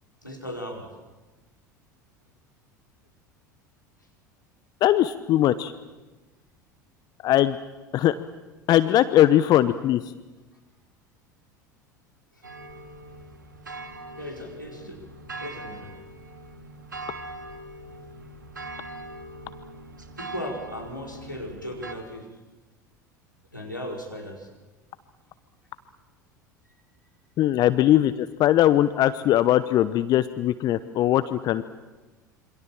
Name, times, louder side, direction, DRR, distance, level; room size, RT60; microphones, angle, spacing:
voice 1, 0.2-0.9 14.2-15.0 15.4-15.9 20.2-22.3 23.5-24.5, left 1 dB, 90° left, -1 dB, 5.1 m, -37 dB
voice 2, 4.8-5.7 7.2-7.6 7.9-8.1 8.7-10.0 27.4-31.6, left 13 dB, 40° left, 14 dB, 1.0 m, -20 dB
sound 1, 12.4-21.9, right 2 dB, 80° right, 2.5 m, -41 dB
27.5 x 25.5 x 7.6 m, 1.2 s
figure-of-eight pair, 70°, 10 cm